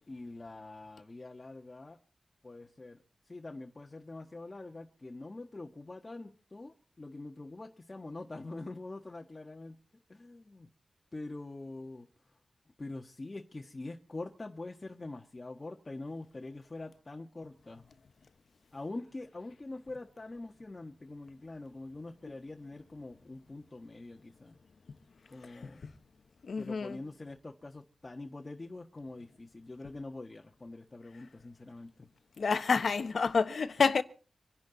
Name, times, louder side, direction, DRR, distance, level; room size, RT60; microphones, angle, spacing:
voice 1, 0.1-2.0 2.4-3.0 3.3-9.8 10.1-10.7 11.1-12.4 12.8-17.9 18.7-24.6 25.3-25.9 26.6-32.1, left 2 dB, 30° left, 1.5 m, -44 dB
voice 2, 25.4-25.9 26.4-27.0 32.4-34.0, left 5 dB, 70° left, 1.2 m, -29 dB
26.0 x 10.5 x 4.0 m
wide cardioid pair, 110°, 0 cm